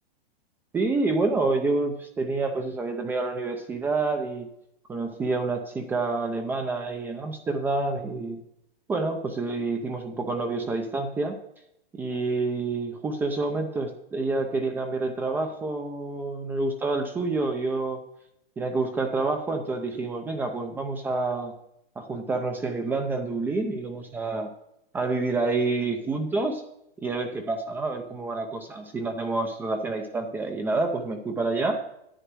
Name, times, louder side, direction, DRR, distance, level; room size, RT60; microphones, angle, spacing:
voice 1, 0.7-4.5 4.9-8.4 8.9-11.4 11.9-18.0 18.6-21.5 22.0-24.5 24.9-26.6 27.0-31.8, right 3 dB, 5° right, 5 dB, 0.5 m, -28 dB
10.0 x 9.1 x 6.1 m, 0.77 s
hypercardioid pair, 160°, 30 cm